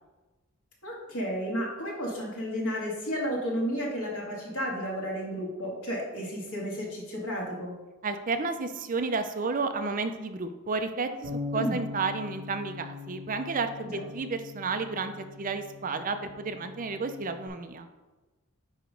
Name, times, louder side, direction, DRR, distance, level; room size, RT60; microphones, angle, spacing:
voice 1, 0.8-7.7 11.5-11.8 13.8-14.0, equal, 90° left, -2 dB, 2.1 m, -32 dB
voice 2, 8.0-17.9, right 4 dB, 40° right, 8 dB, 0.5 m, -32 dB
Bass guitar, 11.2-17.5, left 4 dB, 65° right, 1.9 m, -41 dB
9.1 x 3.0 x 5.1 m, 1.2 s
head